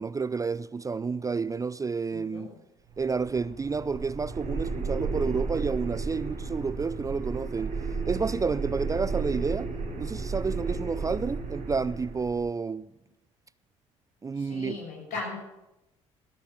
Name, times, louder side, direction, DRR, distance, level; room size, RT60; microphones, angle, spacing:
voice 1, 0.0-2.5 3.0-7.7 8.1-9.7 10.0-12.9 14.2-14.8, right 5 dB, 20° right, 0.4 m, -30 dB
voice 2, 2.1-2.6 14.3-15.4, left 4 dB, 65° left, 6.6 m, -38 dB
sound 1, 2.9-12.5, right 4 dB, 60° right, 4.8 m, -33 dB
16.0 x 6.8 x 8.0 m
hypercardioid pair, 55°, 15 cm